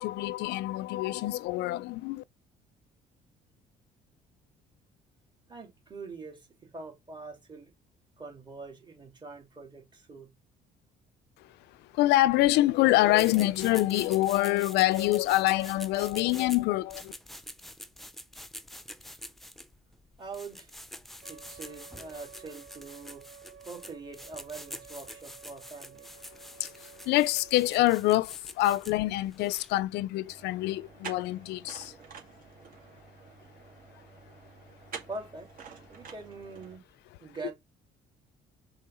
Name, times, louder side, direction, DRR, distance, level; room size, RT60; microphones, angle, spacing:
voice 1, 0.0-2.2 11.9-17.1 26.6-26.7 27.1-31.9, left 17 dB, 80° left, 0.4 m, -26 dB
voice 2, 5.5-7.7 8.2-10.3 20.2-20.7 21.3-23.3 23.6-26.1 35.1-35.5 35.9-36.8 37.2-37.5, right 3 dB, 25° right, 2.7 m, -43 dB
sound 1, 13.1-29.8, left 1 dB, ahead, 0.6 m, -47 dB
Wind instrument woodwind instrument, 21.2-27.8, right 8 dB, 80° right, 1.5 m, -53 dB
sound 2, 30.2-36.8, right 6 dB, 55° right, 2.3 m, -48 dB
5.4 x 3.6 x 5.5 m
cardioid pair, 110°, 17 cm